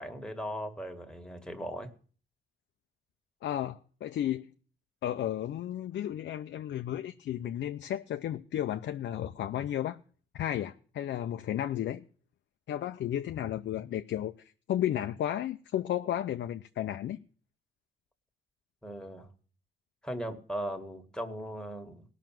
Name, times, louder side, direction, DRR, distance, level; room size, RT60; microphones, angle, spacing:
voice 1, 0.0-1.9 18.8-19.3 20.0-22.0, equal, 5° left, 1.9 m, -38 dB
voice 2, 3.4-4.5 5.0-10.0 10.3-12.0 12.7-14.3 14.7-17.2, left 11 dB, 65° left, 0.6 m, -33 dB
17.5 x 6.1 x 7.6 m
cardioid pair, 90°, 20 cm